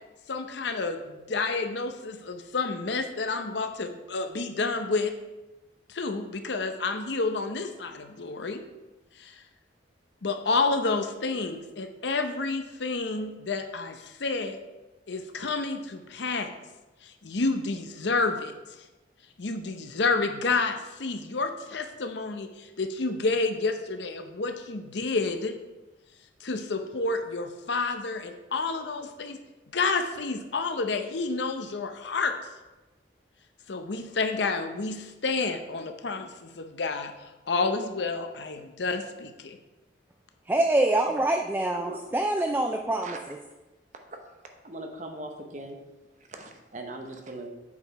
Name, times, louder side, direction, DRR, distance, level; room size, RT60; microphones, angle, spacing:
voice 1, 0.3-5.2 5.9-8.6 9.2-9.4 10.2-14.6 15.1-16.5 17.0-18.5 19.4-25.5 26.4-29.4 29.7-32.3 33.7-37.1 37.5-39.6, left 3 dB, 70° left, 0.7 m, -29 dB
voice 2, 40.5-43.4, right 1 dB, 10° right, 0.4 m, -25 dB
voice 3, 43.0-43.3 44.1-44.2 44.6-45.8 46.2-47.5, right 2 dB, 40° right, 0.8 m, -40 dB
8.3 x 4.8 x 5.6 m
head